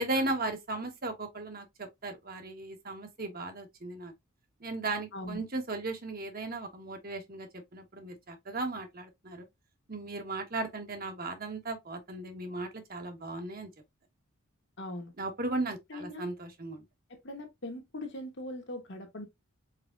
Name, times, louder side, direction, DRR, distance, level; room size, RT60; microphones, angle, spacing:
voice 1, 0.0-4.1 4.6-9.4 9.9-13.7 15.2-16.8, right 2 dB, 40° right, 1.2 m, -36 dB
voice 2, 14.8-15.1 15.9-16.3 17.1-19.3, left 1 dB, 50° left, 1.2 m, -40 dB
4.8 x 4.2 x 2.5 m
head